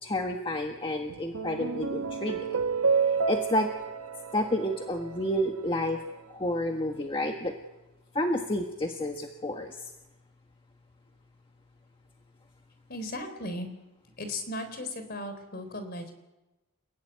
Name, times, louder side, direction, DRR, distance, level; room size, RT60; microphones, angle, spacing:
voice 1, 0.0-2.6 3.3-3.7 4.3-6.0 6.3-7.5 8.1-9.9, left 1 dB, 25° left, 3 dB, 1.5 m, -30 dB
sound 1, 1.1-5.7, right 5 dB, 80° right, 1.2 m, -30 dB
voice 2, 12.9-13.7 14.2-16.1, left 1 dB, 45° left, 9 dB, 4.1 m, -36 dB
30.0 x 17.0 x 9.3 m, 1.0 s
head